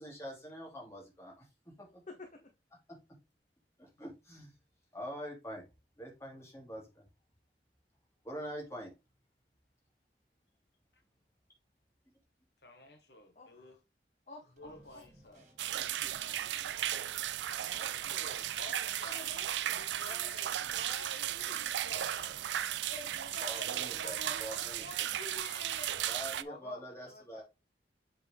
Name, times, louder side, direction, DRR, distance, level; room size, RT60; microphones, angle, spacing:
voice 1, 0.0-2.0 3.8-4.5 4.9-5.7 6.0-7.1 8.2-8.9 23.4-24.9 26.1-27.4, equal, 15° left, 2.8 m, -45 dB
voice 2, 2.1-2.5 13.3-13.8 14.3-15.0 15.8-17.0 17.7-18.3 19.1-21.7 23.0-23.7 25.0-25.2 26.4-27.4, left 2 dB, 45° left, 0.9 m, -54 dB
voice 3, 12.6-13.7 14.6-15.4 17.5-22.3 22.8-26.0, left 2 dB, 65° left, 1.4 m, -50 dB
Drum kit, 14.6-25.4, right 1 dB, 40° right, 2.3 m, -62 dB
sound 1, 15.6-26.4, right 12 dB, 85° right, 0.4 m, -35 dB
7.3 x 4.4 x 3.5 m
head